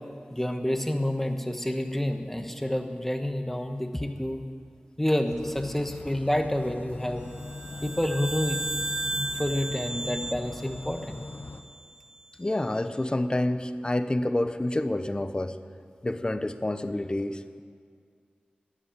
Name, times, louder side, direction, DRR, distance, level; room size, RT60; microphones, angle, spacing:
voice 1, 0.3-4.4 5.0-7.3 7.8-8.6 9.1-11.2, left 1 dB, 10° left, 6 dB, 1.3 m, -29 dB
sound 1, 5.3-11.6, left 3 dB, 75° left, 0.9 m, -40 dB
sound 2, 7.3-11.9, right 1 dB, 20° right, 0.5 m, -35 dB
voice 2, 12.4-15.5 16.0-17.6, left 1 dB, 30° left, 10 dB, 0.8 m, -28 dB
13.5 x 10.0 x 8.9 m, 2.2 s
wide cardioid pair, 55°, 3 cm